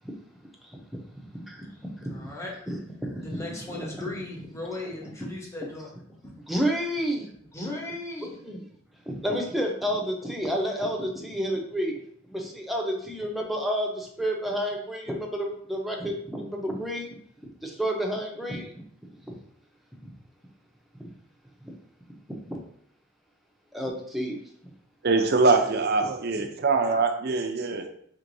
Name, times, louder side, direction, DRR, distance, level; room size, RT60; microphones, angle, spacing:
voice 1, 1.2-1.7 2.1-2.3 2.7-2.8 3.3-3.4 3.8-4.0 5.2-5.3 6.5-7.3 8.4-8.6 9.1-12.0 12.3-17.1 17.6-18.8 19.3-19.4 21.6-21.7 22.5-22.6 23.7-24.4, equal, ahead, 0.7 m, -30 dB
voice 2, 2.1-2.7 3.2-5.9 6.2-6.3 7.5-8.4, left 2 dB, 15° left, 1.0 m, -36 dB
voice 3, 25.0-27.9, right 3 dB, 55° right, 0.5 m, -23 dB
4.6 x 3.7 x 2.6 m
head